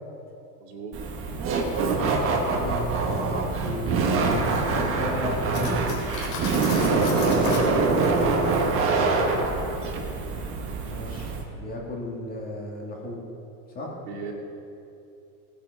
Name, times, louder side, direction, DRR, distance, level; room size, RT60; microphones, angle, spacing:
voice 1, 0.6-1.0 8.9-9.4 9.8-10.0 14.0-14.3, right 4 dB, 75° right, -2 dB, 2.9 m, -37 dB
Laughter, 0.9-11.4, right 3 dB, 30° right, 1.4 m, -24 dB
voice 2, 2.3-2.8 3.6-6.0 6.8-8.3 10.8-13.2 13.7-13.9, left 1 dB, 20° left, -2 dB, 2.0 m, -34 dB
Guitar, 4.3-9.5, left 1 dB, 55° left, 3.5 m, -48 dB
Cutlery silverware, 5.5-7.7, left 4 dB, 80° left, 3.8 m, -35 dB
18.0 x 9.8 x 4.8 m, 2.7 s
supercardioid pair, 165°, 46 cm